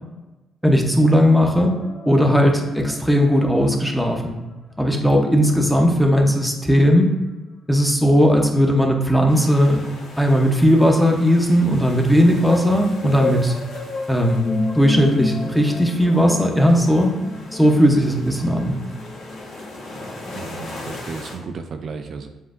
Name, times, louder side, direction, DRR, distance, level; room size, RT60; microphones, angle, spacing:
voice 1, 0.6-1.8 2.1-4.4 4.8-7.1 7.7-9.8 10.2-13.5 14.1-17.1 17.5-18.8, equal, ahead, 1 dB, 0.7 m, -17 dB
sound 1, 1.2-3.8 4.1-4.5 4.9-5.1 5.8-5.9 7.0-7.1 7.9-8.0 8.2-9.3 9.8-10.1 10.6-10.7 11.3-21.0, left 2 dB, 40° left, 0.6 m, -32 dB
sound 2, 9.3-21.4, left 2 dB, 85° left, 1.2 m, -40 dB
voice 2, 20.3-22.3, right 5 dB, 55° right, 6 dB, 0.3 m, -34 dB
7.2 x 2.5 x 2.5 m, 1.1 s
cardioid pair, 90°, 0 cm